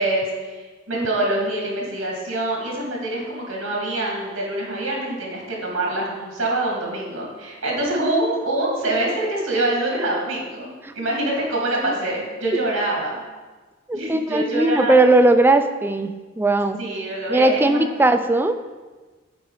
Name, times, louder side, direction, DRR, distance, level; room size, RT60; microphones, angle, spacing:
voice 1, 0.0-10.7 10.9-13.2 13.9-15.0 16.8-17.9, right 1 dB, 65° right, -3 dB, 2.5 m, -25 dB
voice 2, 13.9-16.8 17.3-18.5, right 2 dB, 10° right, 9 dB, 0.3 m, -18 dB
9.1 x 4.8 x 4.9 m, 1.3 s
head